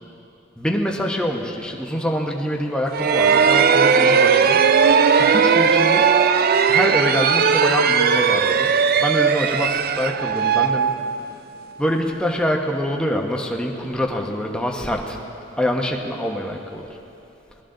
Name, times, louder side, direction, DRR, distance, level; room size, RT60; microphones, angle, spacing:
voice 1, 0.6-4.6 5.2-6.1 6.7-8.7 9.0-10.9 11.8-15.2 15.6-16.9, equal, 5° left, 0 dB, 1.0 m, -25 dB
sound 1, 2.9-11.6, right 6 dB, 50° right, 0.4 m, -17 dB
19.5 x 13.0 x 3.9 m, 2.8 s
head